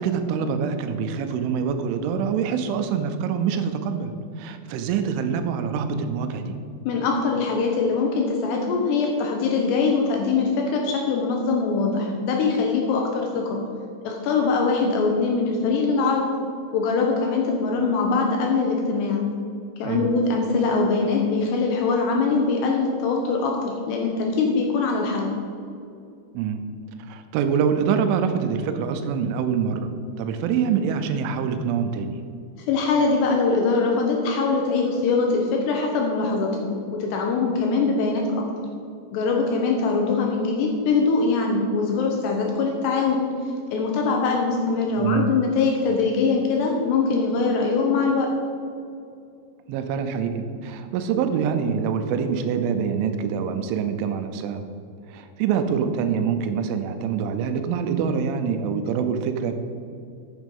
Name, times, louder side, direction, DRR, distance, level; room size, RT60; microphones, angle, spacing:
voice 1, 0.0-6.5 19.8-20.1 26.3-26.7 27.0-29.9 30.2-32.2 45.0-45.3 49.7-54.6 55.1-59.5, right 7 dB, 85° right, 8 dB, 3.0 m, -25 dB
voice 2, 6.9-13.6 14.0-16.3 16.7-19.2 19.8-25.3 32.7-38.2 39.1-43.3 43.7-48.3, left 4 dB, 75° left, 1 dB, 2.6 m, -22 dB
9.2 x 7.5 x 5.4 m, 2.5 s
omnidirectional pair, 5.6 m